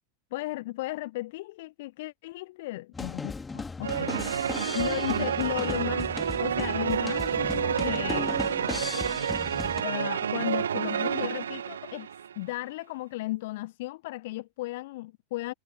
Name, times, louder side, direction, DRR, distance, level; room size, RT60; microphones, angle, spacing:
voice 1, 0.3-6.1 6.4-8.4 9.8-12.1 12.4-15.5, left 19 dB, 50° left, 1.3 m, -35 dB
sound 1, 2.9-9.8, left 4 dB, 10° left, 3.3 m, -36 dB
sound 2, 3.8-12.4, right 8 dB, 65° right, 0.6 m, -29 dB
figure-of-eight pair, 90°, 0 cm